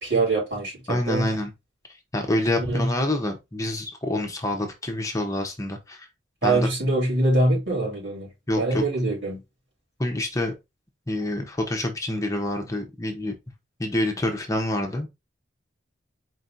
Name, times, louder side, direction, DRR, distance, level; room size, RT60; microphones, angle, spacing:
voice 1, 0.0-1.3 2.5-2.9 6.4-8.3 8.6-9.4, right 2 dB, 65° right, 3.3 m, -24 dB
voice 2, 0.9-1.5 2.1-6.1 6.4-6.7 8.5-8.8 10.0-10.5 11.1-13.3 13.8-15.1, left 1 dB, 15° left, 0.9 m, -27 dB
4.6 x 2.9 x 3.9 m
head